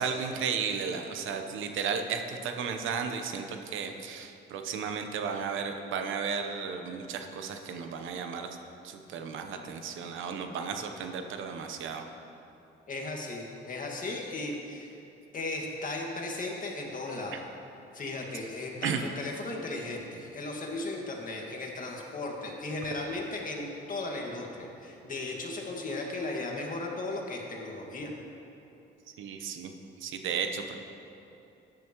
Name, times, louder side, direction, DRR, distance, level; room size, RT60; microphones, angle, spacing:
voice 1, 0.0-8.5 8.8-12.1 17.3-17.4 18.8-19.0 29.2-29.7 30.0-30.8, right 6 dB, 80° right, 6 dB, 0.9 m, -34 dB
voice 2, 12.9-14.9 15.3-17.4 17.9-28.1, left 2 dB, 45° left, 0 dB, 1.8 m, -36 dB
15.0 x 10.5 x 3.0 m, 2.8 s
cardioid pair, 90°, 20 cm